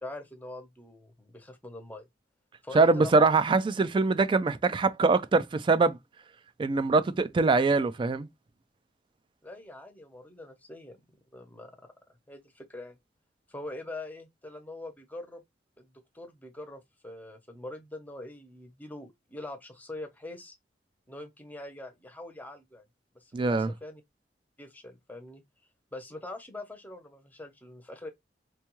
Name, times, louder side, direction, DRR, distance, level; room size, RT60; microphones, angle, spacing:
voice 1, 0.0-2.1 2.6-3.3 9.4-11.0 11.3-11.7 12.3-13.0 13.5-15.4 15.8-20.5 21.1-22.8 23.1-24.0 24.6-25.4 25.9-28.1, left 2 dB, 10° left, 0.7 m, -43 dB
voice 2, 2.7-6.0 6.6-8.3 23.3-23.7, right 3 dB, 30° right, 0.3 m, -23 dB
4.4 x 2.3 x 3.0 m
head